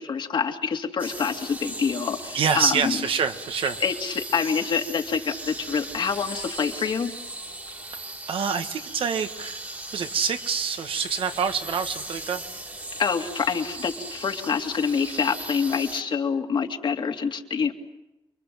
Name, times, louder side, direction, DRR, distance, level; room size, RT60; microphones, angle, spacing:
voice 1, 0.0-3.0 3.8-7.1 13.0-17.7, left 6 dB, 60° left, 4 dB, 2.4 m, -26 dB
sound 1, 1.0-16.0, right 2 dB, 20° right, 2.1 m, -38 dB
voice 2, 2.3-3.8 8.3-9.6 9.9-12.4, right 6 dB, 75° right, 7 dB, 1.8 m, -26 dB
29.5 x 23.5 x 7.7 m, 0.94 s
wide cardioid pair, 145°, 9 cm